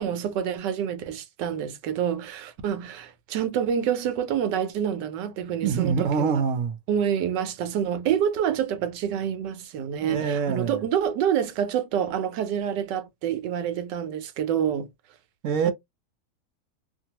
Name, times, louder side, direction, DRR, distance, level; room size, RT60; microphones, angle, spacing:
voice 1, 0.0-6.3 6.9-14.9 15.6-15.7, right 9 dB, 90° right, 1.3 m, -27 dB
voice 2, 5.6-6.8 10.0-10.8 15.4-15.7, right 6 dB, 65° right, 0.8 m, -25 dB
2.8 x 2.3 x 2.8 m
omnidirectional pair, 1.8 m